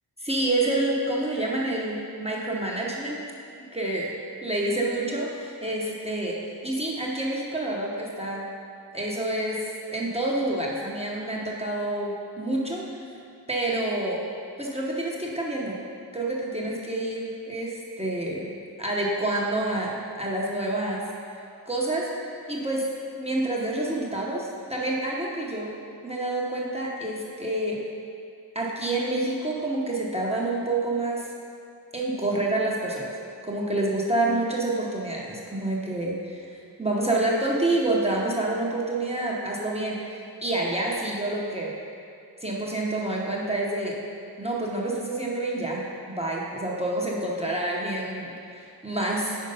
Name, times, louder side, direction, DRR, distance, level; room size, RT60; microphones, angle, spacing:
voice 1, 0.2-3.2 3.7-4.1 4.4-8.5 8.9-12.9 13.5-14.2 14.6-15.8 16.1-18.5 18.8-21.1 21.7-22.1 22.5-25.8 26.0-27.8 28.5-31.3 31.9-33.1 33.4-41.8 42.4-44.0 44.4-49.4, right 2 dB, 15° right, -4 dB, 0.8 m, -28 dB
5.4 x 4.5 x 5.4 m, 2.4 s
wide cardioid pair, 60°, 43 cm